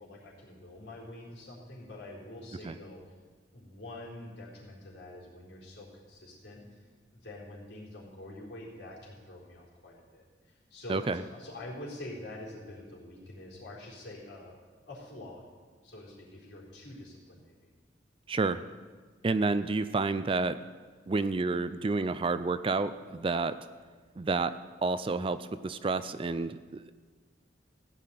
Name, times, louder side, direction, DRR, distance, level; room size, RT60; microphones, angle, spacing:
voice 1, 0.0-3.1 3.5-6.8 7.1-14.6 14.9-15.4 15.8-17.7, left 1 dB, 70° left, -4 dB, 4.0 m, -46 dB
voice 2, 10.9-11.2 18.3-18.6 19.2-20.6 21.1-23.6 24.2-24.6 24.8-26.9, right 3 dB, 30° right, 13 dB, 0.4 m, -30 dB
15.5 x 5.9 x 9.2 m, 1.5 s
head